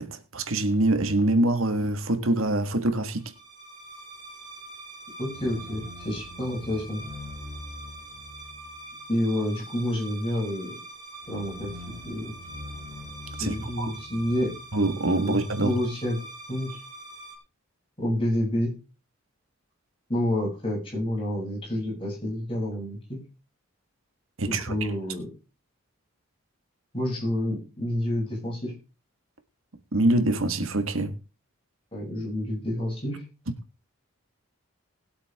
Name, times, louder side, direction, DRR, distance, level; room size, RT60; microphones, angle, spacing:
voice 1, 0.0-3.3 13.4-13.9 14.7-15.8 24.4-24.7 29.9-31.1, right 2 dB, 75° right, 1.7 m, -25 dB
sound 1, 3.2-17.4, right 1 dB, 20° right, 4.4 m, -42 dB
voice 2, 5.2-7.0 9.1-10.7 11.3-12.3 13.4-14.5 15.3-16.2 16.5-16.8 18.0-18.7 20.1-23.2 24.4-25.3 26.9-28.7 31.9-33.2, left 1 dB, 25° left, 7.2 m, -29 dB
20.0 x 8.3 x 3.6 m
head